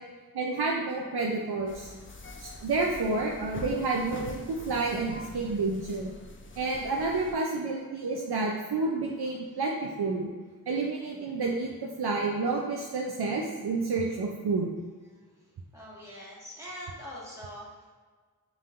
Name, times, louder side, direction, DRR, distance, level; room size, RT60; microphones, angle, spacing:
voice 1, 0.3-1.9 2.4-6.1 6.6-10.3 10.7-14.8, right 3 dB, 85° right, -1 dB, 0.5 m, -30 dB
sound 1, 1.7-7.4, left 2 dB, 35° left, 0.5 m, -44 dB
voice 2, 15.7-17.9, equal, 10° right, -7 dB, 1.5 m, -43 dB
5.5 x 3.4 x 2.5 m, 1.5 s
wide cardioid pair, 50°, 37 cm